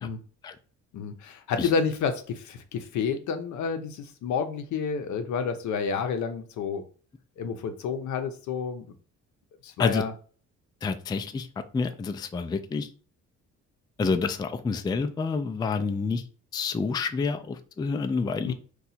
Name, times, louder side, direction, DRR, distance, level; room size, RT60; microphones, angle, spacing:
voice 1, 0.9-6.8 7.4-8.9 9.6-10.1 18.5-18.6, left 6 dB, 75° left, 8 dB, 0.6 m, -29 dB
voice 2, 10.8-11.5 11.7-12.9 14.0-16.2 16.5-18.5, left 4 dB, 15° left, 9 dB, 0.3 m, -28 dB
2.7 x 2.3 x 4.1 m, 0.40 s
cardioid pair, 90°, 30 cm